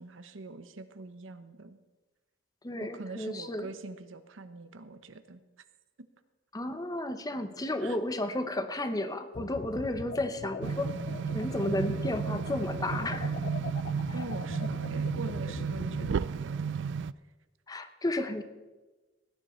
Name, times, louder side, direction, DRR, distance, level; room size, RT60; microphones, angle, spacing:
voice 1, 0.0-1.8 2.8-5.4 6.0-6.1 7.8-8.0 14.1-16.9, right 3 dB, 85° right, 11 dB, 0.9 m, -43 dB
voice 2, 2.6-3.7 6.5-10.9 11.3-13.4 17.7-18.4, left 1 dB, 20° left, 9 dB, 0.8 m, -33 dB
sound 1, 9.3-16.2, left 4 dB, 50° left, 0.4 m, -41 dB
sound 2, 10.6-17.1, right 6 dB, 65° right, 0.3 m, -33 dB
17.5 x 9.8 x 4.4 m, 1.2 s
head